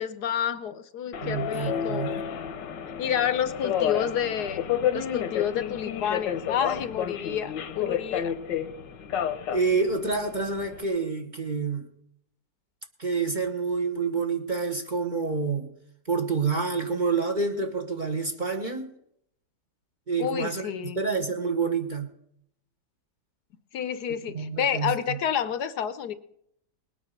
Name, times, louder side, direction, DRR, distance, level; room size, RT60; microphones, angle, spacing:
voice 1, 0.0-2.2 3.0-8.4 20.2-21.0 23.7-26.1, left 9 dB, 70° left, 13 dB, 1.3 m, -29 dB
Subway metro underground, 1.1-10.8, left 9 dB, 85° left, 1.7 m, -31 dB
voice 2, 1.2-2.2 9.5-11.9 13.0-15.7 16.1-18.9 20.1-22.1 24.3-25.2, right 4 dB, 30° right, 5 dB, 1.2 m, -28 dB
20.0 x 9.0 x 6.5 m, 0.73 s
omnidirectional pair, 1.9 m